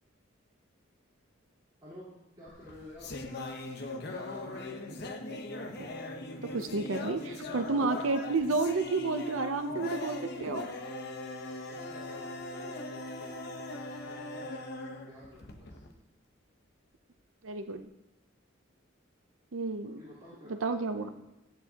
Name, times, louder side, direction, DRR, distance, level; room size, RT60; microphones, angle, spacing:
voice 1, 1.8-3.3 4.0-4.7 11.7-14.6 15.0-16.0 19.8-20.6 21.0-21.1, left 1 dB, 20° right, -11 dB, 3.8 m, -52 dB
sound 1, 2.5-15.9, left 2 dB, 55° left, 1.0 m, -40 dB
voice 2, 6.4-10.7 17.4-17.9 19.5-20.0 20.5-21.1, right 3 dB, 80° right, 8 dB, 0.7 m, -31 dB
14.0 x 9.3 x 2.9 m, 0.94 s
head